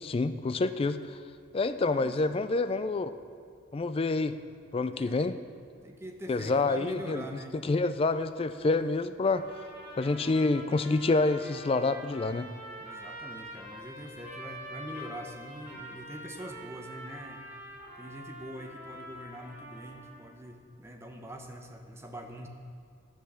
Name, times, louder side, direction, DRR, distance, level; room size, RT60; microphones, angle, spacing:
voice 1, 0.0-1.2 1.5-3.1 3.7-4.4 4.7-5.4 6.3-7.2 7.6-9.5 10.0-12.5, left 3 dB, 25° left, 11 dB, 0.3 m, -27 dB
voice 2, 1.8-2.2 4.9-5.3 5.8-7.5 12.8-17.5 18.0-22.5, right 1 dB, 15° right, 3 dB, 0.8 m, -44 dB
sound 1, 9.3-20.3, equal, 45° right, 3.0 m, -45 dB
10.5 x 6.3 x 6.9 m, 2.2 s
head